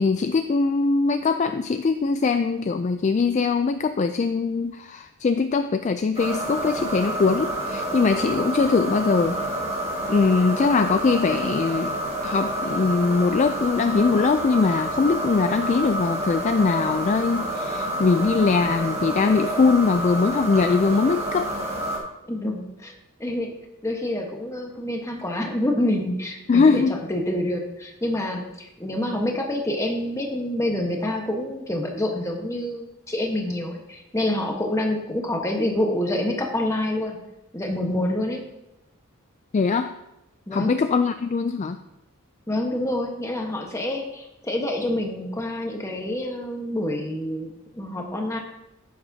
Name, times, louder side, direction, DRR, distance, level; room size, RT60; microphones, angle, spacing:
voice 1, 0.0-9.4 10.1-11.9 12.2-21.5 26.5-27.0 39.5-39.9 40.5-41.8, left 4 dB, 35° left, 9 dB, 0.3 m, -21 dB
sound 1, 6.2-22.0, right 1 dB, 30° right, 1.8 m, -28 dB
voice 2, 22.3-22.9 23.2-23.6 23.8-26.8 27.1-37.2 37.5-38.4 40.5-40.7 42.5-48.4, left 1 dB, 15° left, 1 dB, 1.2 m, -27 dB
10.5 x 8.4 x 2.8 m, 0.91 s
head